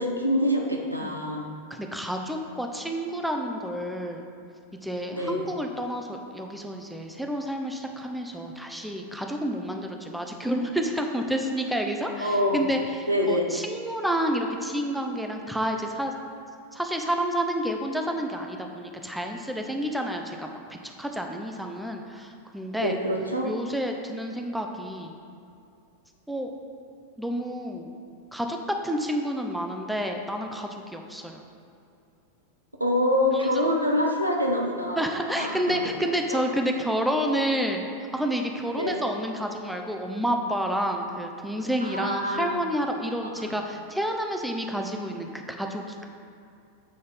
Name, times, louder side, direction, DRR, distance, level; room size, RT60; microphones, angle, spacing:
voice 1, 0.0-1.4 5.1-5.4 12.2-12.6 13.1-13.5 22.8-23.5 32.8-35.1 35.4-35.8 36.3-36.4 38.7-39.0 41.8-42.6 43.2-43.5, left 1 dB, 85° right, 0 dB, 0.8 m, -25 dB
voice 2, 1.7-4.3 4.8-16.1 16.7-23.0 23.4-25.1 26.3-26.5 27.2-27.9 28.3-31.4 33.3-33.5 35.0-37.8 38.1-46.0, equal, ahead, 3 dB, 0.6 m, -29 dB
7.7 x 4.0 x 5.1 m, 2.5 s
figure-of-eight pair, 90°, 0 cm